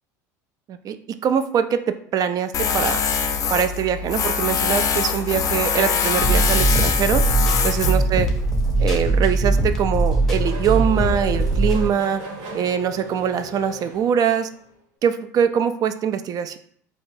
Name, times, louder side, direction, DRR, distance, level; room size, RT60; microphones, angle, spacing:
voice 1, 1.2-1.8 2.1-3.0 3.5-7.2 7.6-8.3 8.8-12.2 12.5-14.5 15.0-16.6, right 8 dB, 40° right, 11 dB, 0.3 m, -22 dB
Tools, 2.5-9.1, left 6 dB, 40° left, 0.4 m, -23 dB
sound 1, 6.2-11.9, right 2 dB, 5° left, 0.8 m, -21 dB
Race car auto racing / Accelerating revving vroom, 9.3-14.7, right 1 dB, 60° right, 0.7 m, -37 dB
4.1 x 2.2 x 2.7 m, 0.63 s
hypercardioid pair, 80°, 9 cm